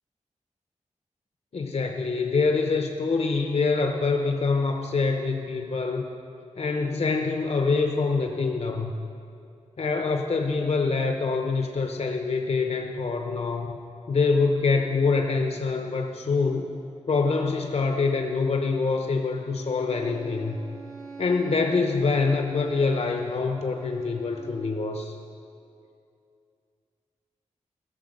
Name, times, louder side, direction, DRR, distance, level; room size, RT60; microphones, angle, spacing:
voice 1, 1.5-6.1 6.6-8.9 9.8-13.8 14.1-16.7 17.1-20.6 21.2-25.1, left 4 dB, 60° left, 3 dB, 0.7 m, -25 dB
Bowed string instrument, 19.4-24.8, right 4 dB, 70° right, 2.5 m, -45 dB
15.5 x 6.6 x 6.5 m, 2.6 s
wide cardioid pair, 80°, 12 cm